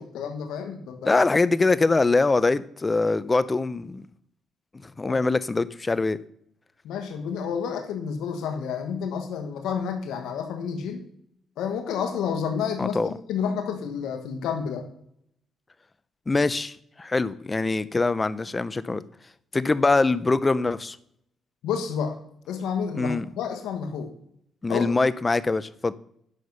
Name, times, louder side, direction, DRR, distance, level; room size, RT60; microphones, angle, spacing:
voice 1, 0.0-1.2 5.0-5.2 6.8-11.0 11.6-14.9 21.6-22.2 22.5-24.1 24.7-24.9, left 7 dB, 85° left, 6 dB, 1.3 m, -30 dB
voice 2, 1.0-4.0 4.8-6.2 12.8-13.1 16.3-19.0 19.5-21.0 23.0-23.3 24.6-25.9, left 3 dB, 25° left, 16 dB, 0.5 m, -23 dB
9.9 x 6.1 x 5.5 m, 0.70 s
cardioid pair, 90°, 0 cm